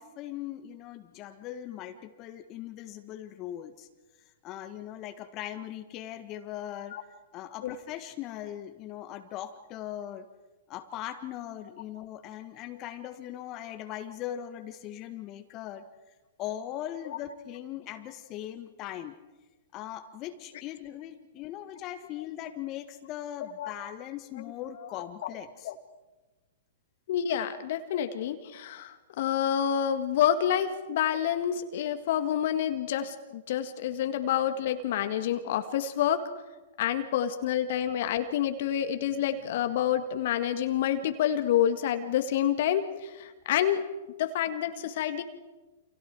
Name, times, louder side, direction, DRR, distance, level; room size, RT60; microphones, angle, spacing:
voice 1, 0.0-3.9 4.4-7.0 7.3-10.3 10.7-15.8 16.4-19.2 19.7-25.7, left 12 dB, 35° left, 7 dB, 1.7 m, -40 dB
voice 2, 27.1-36.3 36.8-43.9 44.2-45.2, left 10 dB, 55° left, 8 dB, 1.8 m, -28 dB
29.5 x 27.0 x 4.8 m, 1.2 s
figure-of-eight pair, 110°, 0 cm